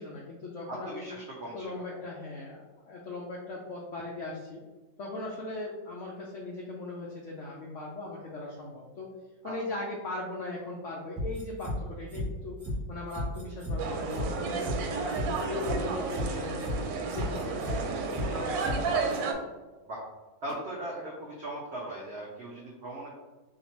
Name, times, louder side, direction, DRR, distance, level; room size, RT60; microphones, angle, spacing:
voice 1, 0.0-1.1 1.5-4.6 5.0-9.1 9.4-12.6 12.9-16.8 17.1-19.1, left 2 dB, 75° left, -3 dB, 0.7 m, -39 dB
voice 2, 0.7-2.0 9.4-9.5 19.8-20.0 20.4-23.1, right 1 dB, 65° right, -4 dB, 0.6 m, -39 dB
sound 1, 11.2-11.8 12.1-12.2 12.6-12.7 13.1-13.7 14.1-14.2 14.6-14.8 15.1-15.8 16.1-16.2 16.6-16.7 17.1-17.8 18.1-18.2 18.6-18.8 19.1-19.2, left 1 dB, 5° right, 1.3 m, -33 dB
sound 2, 13.8-19.3, right 4 dB, 85° right, 1.3 m, -32 dB
4.3 x 2.8 x 3.0 m, 1.2 s
omnidirectional pair, 2.0 m